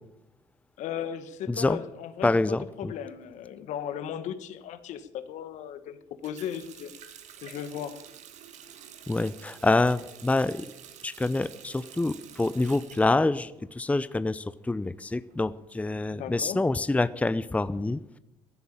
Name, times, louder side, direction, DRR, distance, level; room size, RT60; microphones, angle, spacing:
voice 1, 0.8-6.0 6.2-7.1 7.4-8.0 16.1-16.6, left 9 dB, 65° left, 11 dB, 1.6 m, -36 dB
voice 2, 1.5-1.8 2.2-2.9 9.1-10.7 11.0-18.2, left 2 dB, 10° left, 15 dB, 0.7 m, -26 dB
Water tap faucet, 6.2-14.0 14.3-15.3, right 9 dB, 65° right, 2.0 m, -49 dB
15.5 x 9.5 x 8.7 m, 0.85 s
hypercardioid pair, 70°, 13 cm